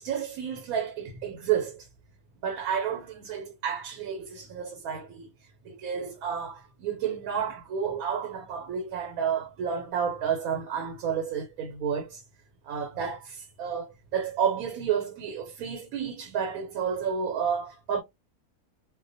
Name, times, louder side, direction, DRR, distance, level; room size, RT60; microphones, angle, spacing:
voice 1, 0.0-1.9 2.4-12.2 12.6-18.0, right 7 dB, 80° right, 1.1 m, -31 dB
2.4 x 2.1 x 2.6 m
omnidirectional pair, 1.5 m